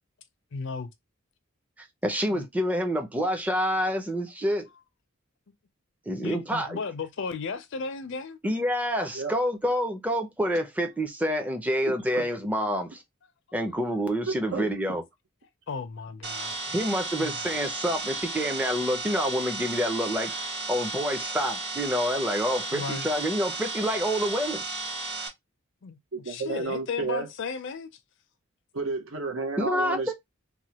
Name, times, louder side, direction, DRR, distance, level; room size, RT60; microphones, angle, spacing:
voice 1, 0.5-0.9 2.3-2.5 6.2-8.4 15.7-16.6 17.2-17.4 22.7-23.1 25.8-27.9, left 5 dB, 60° left, 0.5 m, -35 dB
voice 2, 1.8-4.7 6.1-6.8 8.4-13.0 13.5-15.0 16.7-20.3 20.7-24.6 29.6-30.1, equal, 10° right, 0.5 m, -27 dB
voice 3, 11.8-12.3 14.3-15.0 26.1-27.3 28.7-30.1, right 4 dB, 70° right, 0.8 m, -32 dB
sound 1, 16.2-25.3, right 3 dB, 30° right, 1.2 m, -34 dB
3.1 x 2.2 x 2.8 m
head